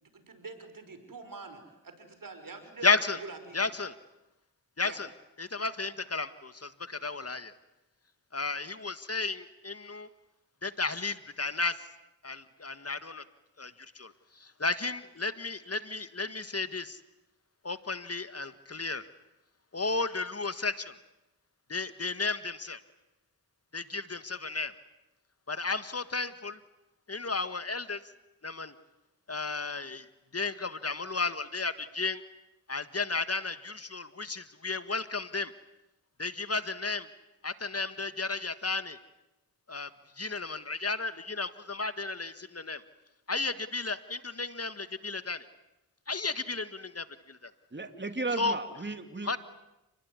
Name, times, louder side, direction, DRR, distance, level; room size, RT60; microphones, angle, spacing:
voice 1, 0.0-2.9 3.2-3.7 4.8-5.0, right 4 dB, 60° right, 8 dB, 5.9 m, -45 dB
voice 2, 2.8-3.2 3.5-3.9 4.8-5.1 5.4-7.5 8.3-10.1 10.6-11.8 12.2-13.2 13.6-17.0 17.6-19.1 19.7-21.0 21.7-22.8 23.7-24.7 25.5-26.6 27.1-28.0 28.4-28.7 29.3-30.1 30.3-32.2 32.7-35.5 36.2-37.1 37.4-39.0 39.7-39.9 40.2-42.8 43.3-45.5 46.1-47.5 48.4-48.6 49.2-49.4, left 3 dB, 40° left, 12 dB, 1.7 m, -33 dB
voice 3, 47.7-49.4, right 3 dB, 30° right, 7 dB, 3.2 m, -35 dB
29.5 x 20.5 x 9.7 m, 0.96 s
cardioid pair, 40°, 38 cm